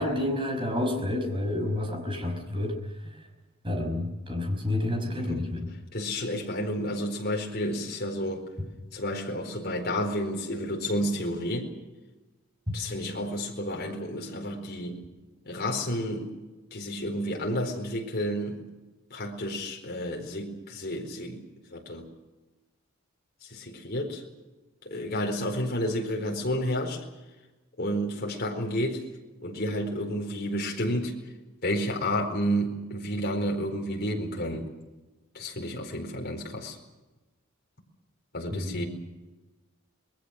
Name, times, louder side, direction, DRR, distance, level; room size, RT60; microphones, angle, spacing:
voice 1, 0.0-2.8 3.6-5.7 12.7-12.8 38.5-38.8, left 1 dB, 25° right, 3 dB, 5.7 m, -29 dB
voice 2, 5.9-8.4 8.9-11.7 12.7-15.0 15.4-16.3 16.7-18.6 19.1-21.4 21.7-22.1 23.4-24.2 24.8-27.0 27.8-29.0 29.4-31.1 31.6-34.7 35.3-36.8 38.3-38.8, equal, 45° left, 1 dB, 4.5 m, -31 dB
27.0 x 21.0 x 6.5 m, 1.1 s
head